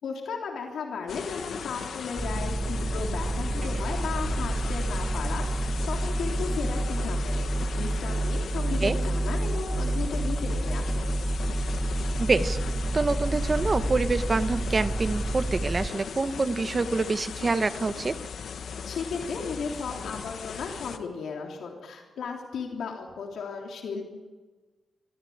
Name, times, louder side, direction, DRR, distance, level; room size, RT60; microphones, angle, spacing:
voice 1, 0.0-11.1 18.8-24.0, left 5 dB, 80° left, 0 dB, 3.4 m, -35 dB
sound 1, 1.1-21.0, left 6 dB, 65° left, 1.3 m, -38 dB
sound 2, 2.2-15.9, right 1 dB, 5° right, 0.7 m, -29 dB
voice 2, 12.2-12.6 12.9-18.2, right 3 dB, 25° right, 10 dB, 1.0 m, -26 dB
24.0 x 14.5 x 8.8 m, 1.3 s
wide cardioid pair, 160°, 0 cm